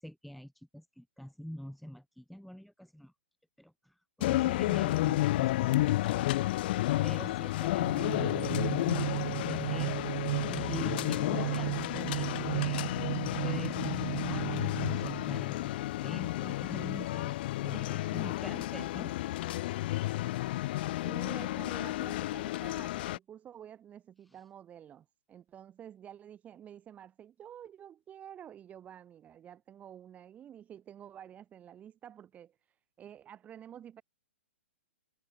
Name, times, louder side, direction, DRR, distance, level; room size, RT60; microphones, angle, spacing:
voice 1, 0.0-3.1 3.6-6.6 7.0-10.0 10.5-12.9 13.4-19.6, equal, ahead, 1.9 m, -46 dB
sound 1, 4.2-23.2, left 16 dB, 45° left, 1.0 m, -32 dB
voice 2, 6.8-7.5 17.7-18.2 21.0-34.0, right 10 dB, 20° right, 4.8 m, -50 dB
sound 2, 7.8-15.7, right 19 dB, 45° right, 1.0 m, -35 dB
hypercardioid pair, 120°, 7 cm